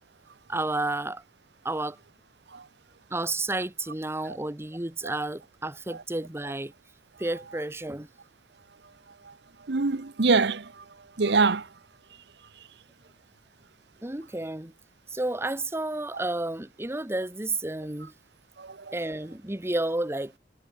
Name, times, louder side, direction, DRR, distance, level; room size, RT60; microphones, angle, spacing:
voice 1, 0.5-1.2 1.6-2.0 3.1-6.7 7.2-8.1 14.0-14.7 15.1-18.1 18.9-20.4, right 2 dB, 15° right, 1.0 m, -31 dB
voice 2, 9.7-10.7 11.2-11.7 18.6-18.9, right 4 dB, 70° right, 0.9 m, -24 dB
head